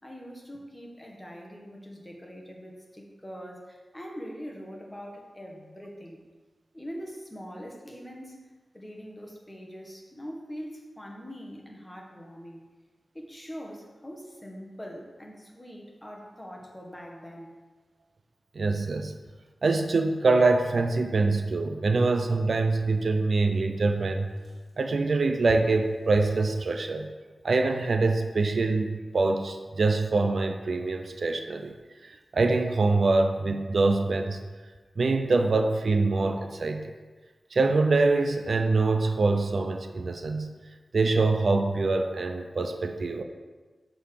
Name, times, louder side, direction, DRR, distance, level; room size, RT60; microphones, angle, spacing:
voice 1, 0.0-6.2 6.7-12.6 13.1-17.5, equal, 15° left, 0 dB, 1.6 m, -43 dB
voice 2, 18.5-19.1 19.6-24.3 24.8-27.1 27.4-31.7 32.0-34.4 35.0-36.9 37.5-40.5 40.9-43.2, right 3 dB, 70° right, 6 dB, 0.6 m, -24 dB
sound 1, 18.9-19.2 20.0-20.1 20.4-20.5 21.8-21.9 22.6-24.8 25.3-25.4 26.2-26.3 26.7-27.0 27.6-27.8 29.1-29.9 30.9-31.1, left 2 dB, 35° left, 2.1 m, -49 dB
6.9 x 4.0 x 6.6 m, 1.3 s
cardioid pair, 50°, 0 cm